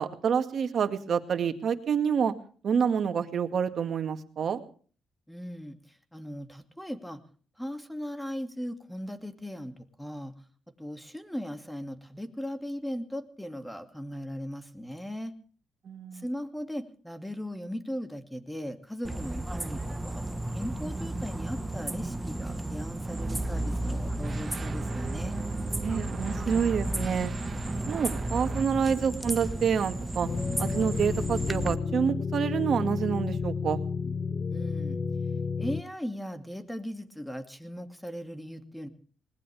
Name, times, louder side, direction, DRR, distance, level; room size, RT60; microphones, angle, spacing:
voice 1, 0.0-2.3 2.6-4.6 15.9-16.2 25.8-27.3 27.9-30.3 30.6-33.8, right 7 dB, 55° right, 8 dB, 2.1 m, -28 dB
voice 2, 5.3-7.2 7.6-10.3 10.8-15.3 16.1-25.3 34.5-35.0 35.6-38.9, equal, 5° left, 7 dB, 2.4 m, -38 dB
sound 1, 19.1-31.7, right 1 dB, 10° right, 1.4 m, -34 dB
sound 2, 23.0-28.6, right 3 dB, 40° right, 1.8 m, -37 dB
sound 3, 30.2-35.8, left 5 dB, 35° left, 0.9 m, -31 dB
20.0 x 19.5 x 3.5 m, 0.42 s
cardioid pair, 90°, 0 cm